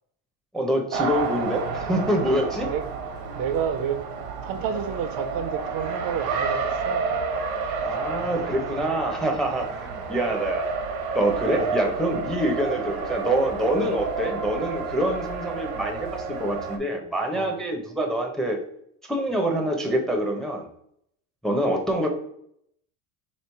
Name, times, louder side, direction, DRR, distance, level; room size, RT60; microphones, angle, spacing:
voice 1, 0.5-2.7 7.8-10.7 11.1-18.6 19.1-20.7 21.4-22.1, right 1 dB, ahead, 2 dB, 0.5 m, -26 dB
Race car auto racing, 0.9-16.8, right 4 dB, 80° right, 1.0 m, -30 dB
voice 2, 3.3-4.0 4.4-7.0 7.9-8.0 11.4-12.3 13.8-14.0 17.3-17.7, right 8 dB, 55° right, 10 dB, 0.5 m, -31 dB
3.2 x 3.1 x 4.4 m, 0.72 s
cardioid pair, 130°, 42 cm